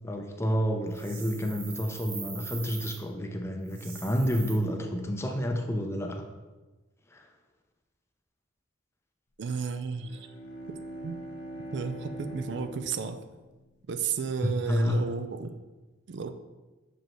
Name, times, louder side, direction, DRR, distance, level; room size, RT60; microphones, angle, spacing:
voice 1, 0.0-6.2 7.1-7.3 14.7-15.0, equal, 15° left, 3 dB, 0.5 m, -29 dB
sound 1, 0.9-3.0 3.6-4.5, right 5 dB, 80° right, 1.6 m, -42 dB
voice 2, 9.4-10.3 10.7-10.8 11.0-11.2 11.7-13.2 13.9-15.5 16.1-16.4, right 5 dB, 65° right, 9 dB, 0.4 m, -33 dB
Bowed string instrument, 9.8-14.4, equal, 70° left, 0.7 m, -43 dB
6.2 x 5.2 x 3.0 m, 1.2 s
head